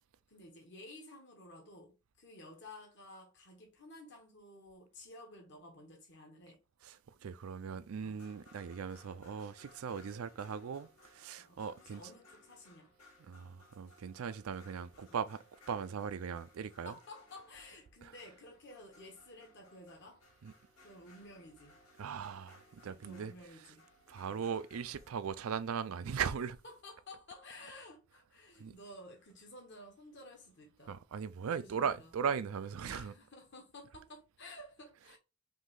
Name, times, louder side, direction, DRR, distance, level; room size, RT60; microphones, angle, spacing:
voice 1, 0.3-6.6 8.0-8.2 11.4-12.9 15.0-15.2 16.8-20.2 20.8-21.8 22.8-23.9 24.2-24.4 26.1-26.2 26.6-31.0 31.5-32.1 32.8-35.2, left 1 dB, 55° left, 1.7 m, -53 dB
voice 2, 6.8-12.0 13.3-16.9 20.4-20.5 22.0-23.3 24.1-26.6 28.6-28.7 30.9-33.1, right 7 dB, 75° right, 0.4 m, -39 dB
sound 1, 8.0-25.1, left 1 dB, 90° left, 2.1 m, -63 dB
5.2 x 2.7 x 3.8 m
head